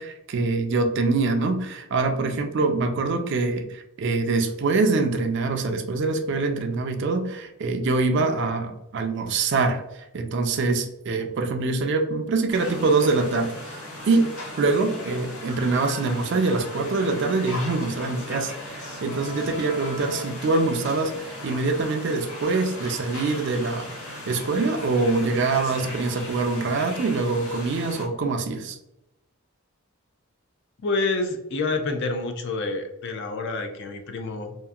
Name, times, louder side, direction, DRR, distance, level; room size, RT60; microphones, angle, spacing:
voice 1, 0.0-13.8 14.1-14.3 14.6-28.8, right 3 dB, 55° right, 5 dB, 0.4 m, -24 dB
sound 1, 12.5-28.1, left 1 dB, 80° left, 0.7 m, -37 dB
voice 2, 30.8-34.6, left 3 dB, 55° left, 5 dB, 0.4 m, -28 dB
2.8 x 2.4 x 2.3 m, 0.88 s
head